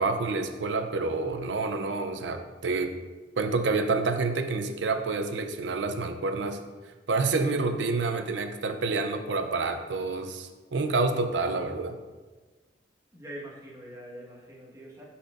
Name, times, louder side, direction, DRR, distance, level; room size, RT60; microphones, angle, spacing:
voice 1, 0.0-2.9 3.4-6.6 7.1-12.0, right 3 dB, 75° right, 8 dB, 0.6 m, -28 dB
voice 2, 13.1-15.0, right 1 dB, 15° right, -5 dB, 1.4 m, -43 dB
11.5 x 4.3 x 2.5 m, 1.3 s
head